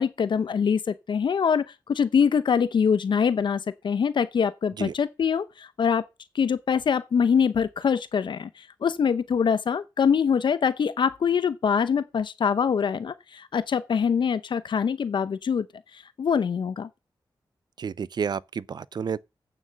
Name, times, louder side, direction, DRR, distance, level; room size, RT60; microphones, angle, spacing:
voice 1, 0.0-6.0 6.3-15.7 15.9-16.9, left 6 dB, 70° left, 0.7 m, -24 dB
voice 2, 17.8-19.2, right 6 dB, 60° right, 0.5 m, -30 dB
8.9 x 7.4 x 6.4 m
wide cardioid pair, 100°, 8 cm